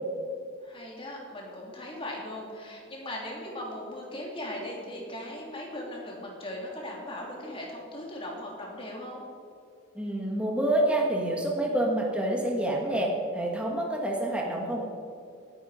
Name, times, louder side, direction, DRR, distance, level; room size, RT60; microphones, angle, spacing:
voice 1, 0.6-9.2, left 1 dB, 25° left, -2 dB, 3.1 m, -38 dB
voice 2, 9.9-13.1 13.3-14.8, right 1 dB, 5° right, -1 dB, 1.6 m, -27 dB
19.0 x 10.5 x 5.0 m, 2.3 s
head